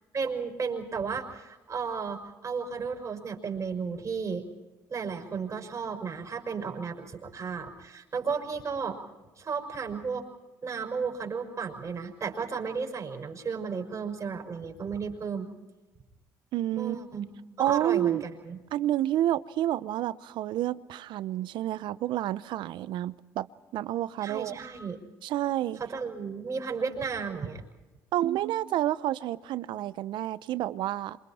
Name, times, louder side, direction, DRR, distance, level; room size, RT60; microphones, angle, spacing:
voice 1, 0.1-4.5 4.9-9.0 9.4-10.3 10.6-15.5 16.8-17.3 17.6-18.6 24.2-25.0 25.8-27.6, right 5 dB, 40° right, 5.7 m, -34 dB
voice 2, 16.5-17.0 17.6-18.2 18.7-23.5 23.7-24.6 25.2-25.8 28.1-31.2, right 13 dB, 75° right, 0.8 m, -29 dB
27.5 x 26.0 x 4.4 m
supercardioid pair, 70°, 8 cm